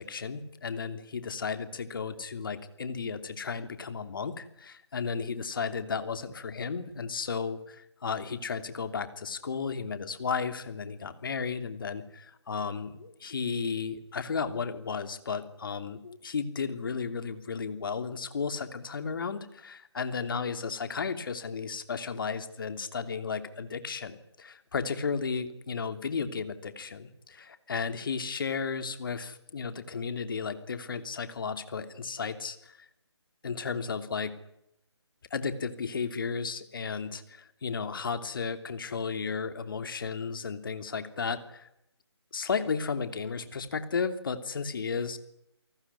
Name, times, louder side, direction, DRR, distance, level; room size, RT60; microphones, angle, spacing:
voice 1, 0.0-32.9 33.4-34.3 35.3-41.7 42.3-45.2, left 5 dB, 50° left, 9 dB, 3.0 m, -34 dB
29.0 x 19.5 x 9.9 m, 0.81 s
figure-of-eight pair, 150°, 15 cm